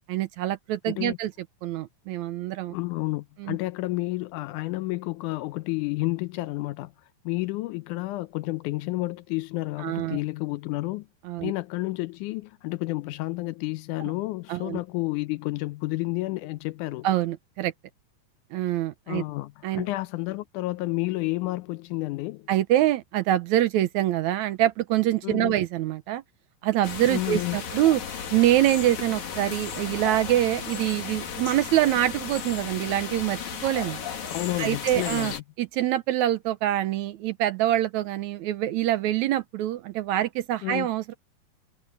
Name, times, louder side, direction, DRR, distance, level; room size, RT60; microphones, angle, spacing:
voice 1, 0.1-1.3 1.6-2.8 3.4-3.6 9.8-10.2 11.3-11.5 14.5-14.8 17.0-17.7 18.5-19.2 19.6-19.8 22.5-26.2 26.6-28.0 28.3-34.0 34.6-41.1, right 13 dB, 75° right, 1.9 m, -25 dB
voice 2, 0.9-1.2 2.7-6.9 7.3-11.1 11.4-17.1 19.1-22.5 25.2-25.6 27.1-27.6 34.3-35.4 40.6-40.9, left 20 dB, 80° left, 2.0 m, -30 dB
sound 1, 26.8-35.4, left 7 dB, 65° left, 3.8 m, -35 dB
omnidirectional pair, 3.7 m